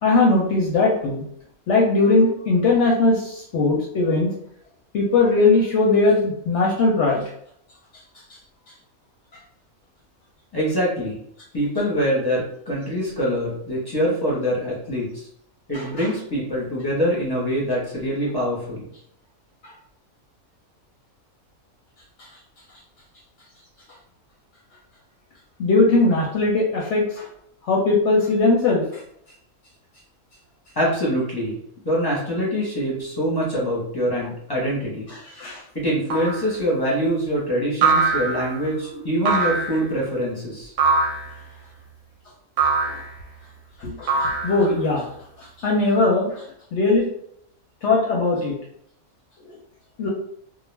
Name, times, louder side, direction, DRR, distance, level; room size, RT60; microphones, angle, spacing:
voice 1, 0.0-1.2 1.7-4.3 4.9-7.2 15.7-16.1 25.6-27.3 27.7-28.8 35.1-35.6 38.0-38.1 42.8-43.0 43.8-45.1 45.4-46.4 46.7-47.1 47.8-48.5 50.0-50.1, left 3 dB, 65° left, -2 dB, 0.8 m, -19 dB
voice 2, 10.5-11.1 11.5-15.1 15.7-18.9 30.8-31.5 31.8-35.1 35.7-40.7, equal, 20° left, -7 dB, 0.7 m, -24 dB
sound 1, 36.1-36.5 37.8-38.6 39.3-39.8 40.8-41.3 42.6-43.1 44.1-44.8, right 4 dB, 65° right, 0.8 m, -22 dB
2.4 x 2.1 x 3.1 m, 0.70 s
omnidirectional pair, 1.5 m